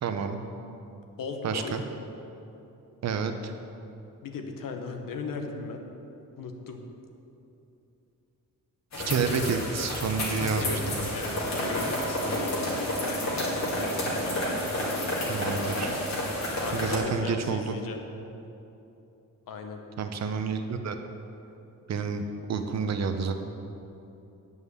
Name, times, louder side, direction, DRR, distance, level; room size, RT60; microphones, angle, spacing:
voice 1, 0.0-0.4 1.4-1.8 3.0-3.5 9.0-11.0 15.3-15.9 16.7-17.8 20.0-21.0 21.9-23.3, right 5 dB, 55° right, 7 dB, 0.8 m, -29 dB
voice 2, 1.2-1.7 4.2-5.8 6.4-6.8 10.4-10.8 11.1-12.9 16.6-18.0 19.5-19.8, left 4 dB, 80° left, 4 dB, 1.1 m, -36 dB
sound 1, 8.9-17.0, left 1 dB, 55° left, 2.5 m, -30 dB
9.6 x 5.5 x 8.1 m, 2.8 s
wide cardioid pair, 160°, 33 cm